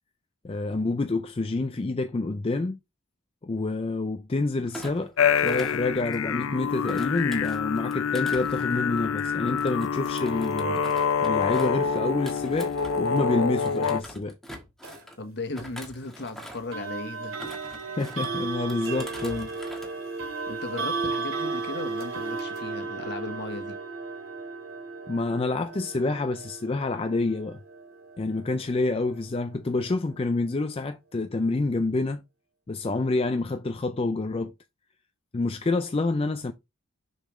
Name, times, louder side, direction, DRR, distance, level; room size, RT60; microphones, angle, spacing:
voice 1, 0.4-2.8 3.4-5.1 5.4-10.8 11.2-14.4 17.9-19.5 25.1-27.6 28.2-32.2 32.7-34.5 35.3-36.5, left 3 dB, 25° left, 0.4 m, -28 dB
Thump thud, 4.7-6.4 6.9-13.2 13.6-15.2 15.5-16.8 17.2-18.3 18.7-19.9 20.2-20.5, equal, ahead, 1.4 m, -44 dB
sound 1, 5.2-14.0, left 6 dB, 70° left, 0.6 m, -26 dB
sound 2, 14.8-15.0 16.7-29.5, right 4 dB, 65° right, 2.6 m, -35 dB
voice 2, 15.2-17.4 20.5-23.8, left 2 dB, 50° left, 1.3 m, -36 dB
6.9 x 5.6 x 3.1 m
head